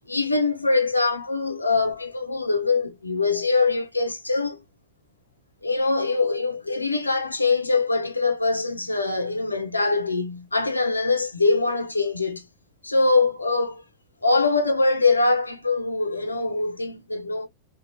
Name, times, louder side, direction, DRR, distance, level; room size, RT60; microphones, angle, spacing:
voice 1, 0.1-4.6 5.6-12.5 12.8-13.8 14.2-17.5, left 3 dB, 80° left, 1.4 m, -23 dB
5.8 x 2.7 x 3.0 m
figure-of-eight pair, 90°, 0 cm